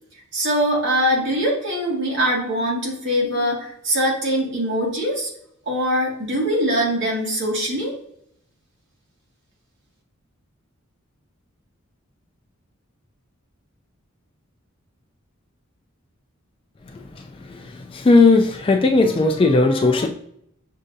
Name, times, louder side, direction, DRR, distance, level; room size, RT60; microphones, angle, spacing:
voice 1, 0.3-5.3 5.7-7.9, equal, 55° right, -3 dB, 1.6 m, -22 dB
voice 2, 17.5-20.1, left 3 dB, 25° left, 4 dB, 0.3 m, -17 dB
6.4 x 2.5 x 2.6 m, 0.70 s
head